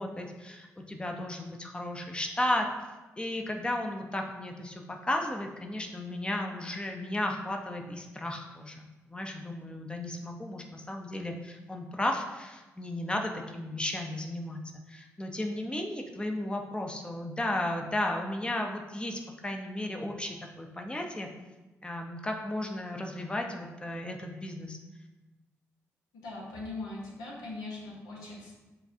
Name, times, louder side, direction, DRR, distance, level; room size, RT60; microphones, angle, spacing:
voice 1, 0.0-2.7 3.2-14.6 14.9-21.3 21.8-24.8, left 1 dB, 15° left, 2 dB, 0.6 m, -34 dB
voice 2, 26.1-28.5, left 2 dB, 85° left, -3 dB, 0.9 m, -40 dB
5.7 x 2.3 x 2.7 m, 1.1 s
supercardioid pair, 45°, 6 cm